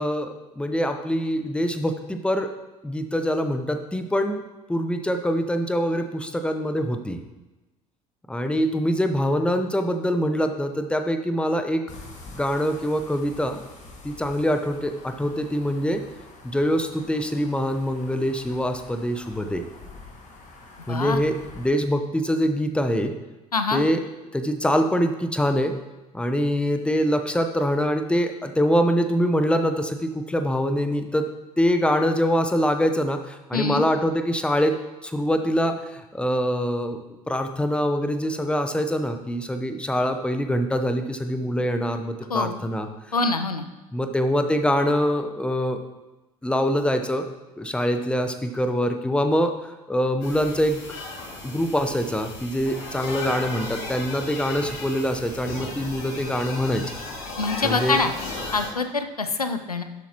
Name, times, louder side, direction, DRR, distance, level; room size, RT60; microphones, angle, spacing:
voice 1, 0.0-2.5 2.8-4.4 4.7-7.2 8.3-11.9 12.3-13.6 14.0-16.0 16.4-19.6 20.9-23.1 23.7-24.0 24.3-25.7 26.1-31.3 31.6-34.7 35.0-37.0 37.3-42.9 43.9-45.8 46.4-47.3 47.6-49.5 49.9-50.8 51.4-56.8 57.6-58.0, equal, 5° left, 7 dB, 0.9 m, -24 dB
sound 1, 11.9-21.7, left 3 dB, 40° left, 2.1 m, -46 dB
voice 2, 20.9-21.2 23.5-23.8 33.5-33.8 42.3-42.6 43.1-43.7 57.4-58.1 58.5-59.8, left 3 dB, 90° left, 9 dB, 0.6 m, -25 dB
sound 2, 50.2-58.7, left 2 dB, 65° left, 2.3 m, -35 dB
12.0 x 8.3 x 3.0 m, 1.1 s
figure-of-eight pair, 60°, 19 cm